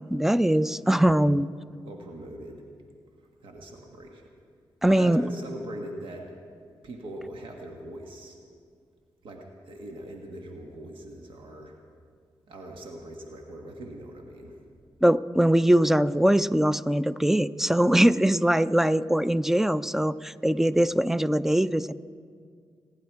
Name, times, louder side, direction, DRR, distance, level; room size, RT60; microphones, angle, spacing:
voice 1, 0.0-1.5 4.8-5.2 15.0-21.9, right 1 dB, 5° right, 15 dB, 0.5 m, -22 dB
voice 2, 1.8-2.6 3.4-4.2 4.8-6.3 6.8-8.4 9.2-11.8 12.5-14.6, right 1 dB, 85° right, 2 dB, 1.6 m, -41 dB
28.5 x 10.5 x 4.7 m, 2.1 s
cardioid pair, 60°, 9 cm